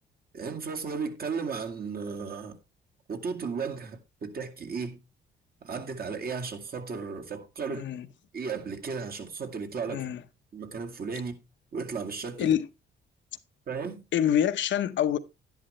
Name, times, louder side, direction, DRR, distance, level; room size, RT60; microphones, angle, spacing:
voice 1, 0.3-2.6 3.1-5.0 5.6-7.9 8.3-10.1 10.5-11.4 11.7-12.5 13.7-14.0, right 5 dB, 50° right, 2.1 m, -35 dB
voice 2, 7.7-8.1 9.9-10.2 12.4-12.7 14.1-15.2, left 10 dB, 70° left, 0.9 m, -26 dB
11.0 x 10.5 x 3.2 m
cardioid pair, 90°, 20 cm